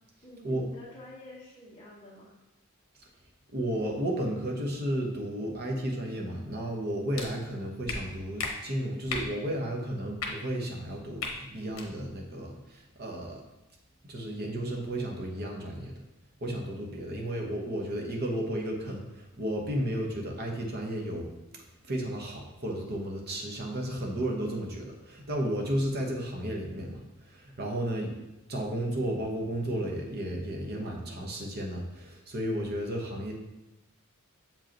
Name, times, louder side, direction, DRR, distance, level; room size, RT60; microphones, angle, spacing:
voice 1, 0.2-2.3 16.9-17.5, left 1 dB, 25° left, -9 dB, 1.4 m, -49 dB
voice 2, 3.5-13.4 14.1-15.9 16.4-21.3 21.8-28.1 28.5-33.3, right 1 dB, 50° right, 0 dB, 1.1 m, -33 dB
sound 1, 7.1-7.3 7.9-8.0 8.4-8.5 9.1-9.3 10.2-10.3 11.2-11.3 11.7-11.9, left 4 dB, 70° left, 1.0 m, -33 dB
7.4 x 5.0 x 3.0 m, 0.97 s
head